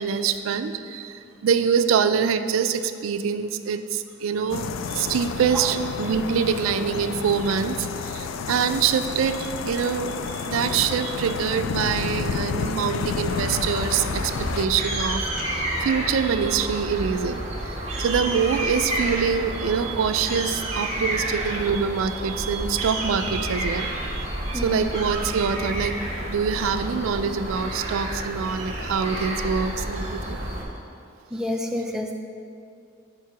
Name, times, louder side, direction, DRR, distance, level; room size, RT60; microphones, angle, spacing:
voice 1, 0.0-15.2 15.5-30.4, right 6 dB, 80° right, 10 dB, 0.3 m, -25 dB
sound 1, 4.5-14.7, left 5 dB, 70° left, 0.3 m, -30 dB
sound 2, 13.3-30.6, right 1 dB, 35° right, 1.1 m, -30 dB
voice 2, 24.5-24.9 31.3-32.1, left 1 dB, 5° right, 3 dB, 0.4 m, -29 dB
4.9 x 4.6 x 5.8 m, 2.4 s
head